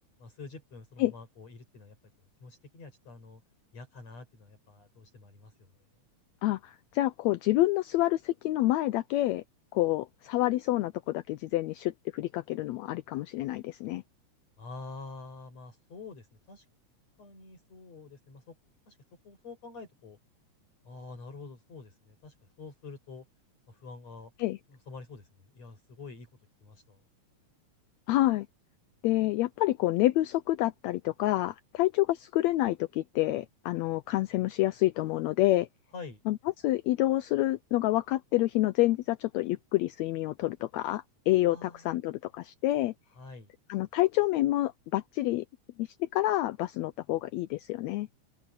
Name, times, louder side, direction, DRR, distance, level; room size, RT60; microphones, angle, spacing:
voice 1, 0.2-2.0 2.4-3.4 3.7-5.9 14.6-16.7 17.2-18.6 18.9-19.0 19.2-20.2 20.8-23.3 23.7-24.3 24.7-26.3 26.6-27.0 35.9-36.2 41.5-41.9 43.1-43.5, left 4 dB, 60° left, 6.0 m, -47 dB
voice 2, 6.4-9.4 9.7-14.0 24.4-24.6 28.1-28.5 29.0-35.7 36.3-42.9 43.7-45.4 45.8-48.1, left 16 dB, 80° left, 1.7 m, -28 dB
open air
omnidirectional pair, 3.5 m